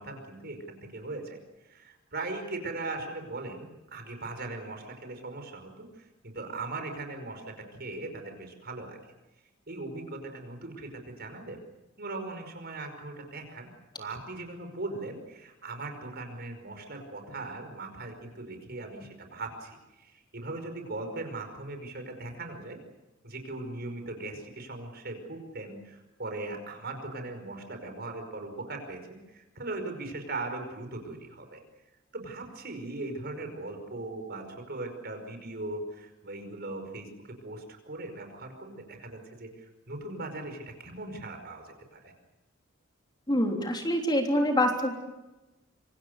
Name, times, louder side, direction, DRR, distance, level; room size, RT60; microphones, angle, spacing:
voice 1, 0.0-1.4 1.6-9.0 9.7-11.6 12.0-13.7 14.0-22.8 23.2-31.6 32.1-42.1, right 2 dB, 50° right, 6 dB, 5.3 m, -39 dB
voice 2, 43.3-44.9, left 1 dB, 20° left, 2 dB, 3.4 m, -25 dB
26.5 x 25.5 x 6.6 m, 1.0 s
head